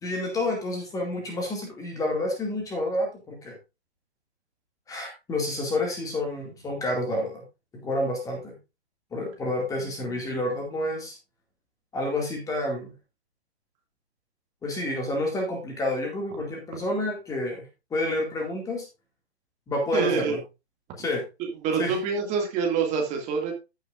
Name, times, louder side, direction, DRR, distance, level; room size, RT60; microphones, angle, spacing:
voice 1, 0.0-3.6 4.9-7.4 7.7-8.6 9.1-11.2 11.9-12.9 14.6-17.6 17.9-18.8 19.7-20.4 21.0-21.2 21.8-21.9, left 1 dB, 10° left, 1 dB, 2.2 m, -29 dB
voice 2, 19.9-20.4 21.6-23.5, right 5 dB, 20° right, 2 dB, 2.2 m, -26 dB
15.0 x 6.6 x 2.5 m, 0.26 s
figure-of-eight pair, 135°, 33 cm